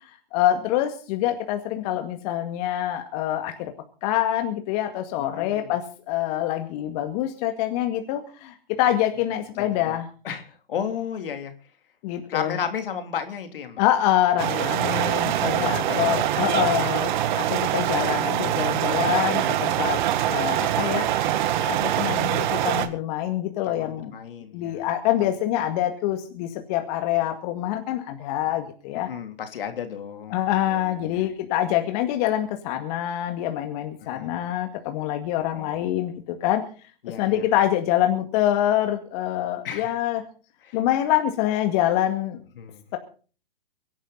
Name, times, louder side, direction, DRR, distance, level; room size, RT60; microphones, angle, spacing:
voice 1, 0.3-3.7 4.0-10.1 12.0-12.6 13.8-24.2 24.5-29.1 30.3-36.6 37.1-40.2 40.7-42.4, left 12 dB, 40° left, 5 dB, 2.1 m, -25 dB
voice 2, 5.3-5.7 9.6-10.0 10.2-11.5 12.3-13.8 14.8-16.2 20.3-20.6 23.7-24.8 25.2-25.3 28.9-30.3 30.7-31.2 34.0-34.3 35.5-35.8 37.0-37.4 39.6-39.9 40.6-40.8 42.6-42.8, left 7 dB, 70° left, 7 dB, 3.1 m, -34 dB
sound 1, 14.4-22.9, right 12 dB, 55° right, 2.0 m, -24 dB
23.5 x 11.0 x 4.1 m, 0.39 s
hypercardioid pair, 130°, 29 cm